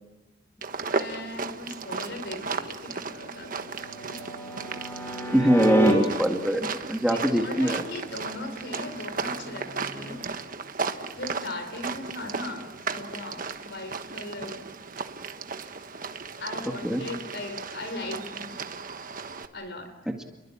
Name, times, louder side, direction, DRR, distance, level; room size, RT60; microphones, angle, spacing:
sound 1, 0.6-19.5, right 4 dB, 40° right, 1.3 m, -35 dB
voice 1, 0.9-3.5 3.8-4.2 7.1-10.2 11.1-14.6 16.4-18.5 19.5-19.9, left 2 dB, 55° left, 8 dB, 4.8 m, -38 dB
sound 2, 3.1-5.9 8.9-10.1, equal, 10° left, 6.3 m, -32 dB
voice 2, 5.3-7.8 16.8-17.0, equal, 5° right, 3 dB, 1.8 m, -22 dB
29.5 x 22.5 x 8.7 m, 1.1 s
head